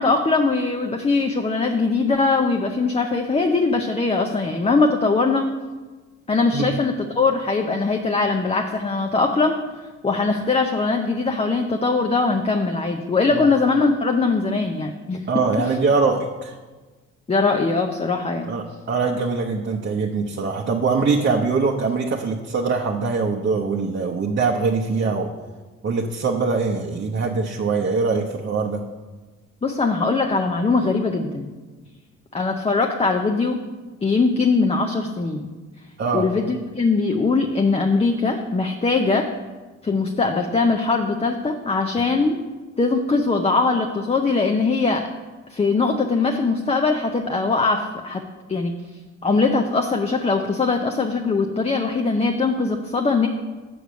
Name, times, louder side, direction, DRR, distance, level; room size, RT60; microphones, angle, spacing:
voice 1, 0.0-5.5 6.3-9.6 10.0-15.3 15.6-15.8 17.3-18.5 29.6-31.5 32.3-33.6 34.0-35.5 36.1-39.3 39.8-42.4 42.8-45.1 45.5-48.2 48.5-48.7 49.2-53.3, left 3 dB, 20° left, 3 dB, 0.7 m, -21 dB
voice 2, 15.3-16.5 18.5-25.3 25.8-28.8 36.0-36.3, right 4 dB, 40° right, 1 dB, 0.8 m, -22 dB
7.0 x 6.6 x 6.3 m, 1.3 s
cardioid pair, 90°, 30 cm